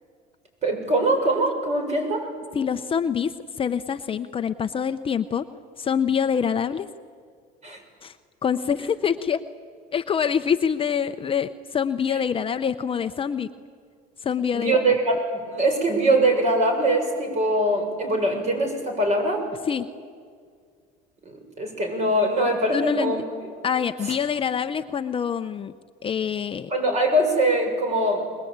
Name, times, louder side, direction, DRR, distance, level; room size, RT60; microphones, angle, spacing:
voice 1, 0.6-2.3 7.6-7.8 14.5-19.5 21.2-23.2 24.0-24.1 26.7-28.2, right 1 dB, 35° right, 4 dB, 6.8 m, -22 dB
voice 2, 2.5-3.3 3.6-5.4 5.8-6.9 8.0-8.1 8.4-9.4 9.9-13.5 14.2-14.8 19.7-19.9 22.7-23.1 23.6-25.7 26.0-26.7, left 7 dB, 30° left, 9 dB, 0.7 m, -25 dB
29.5 x 22.0 x 8.8 m, 2.1 s
cardioid pair, 115°, 19 cm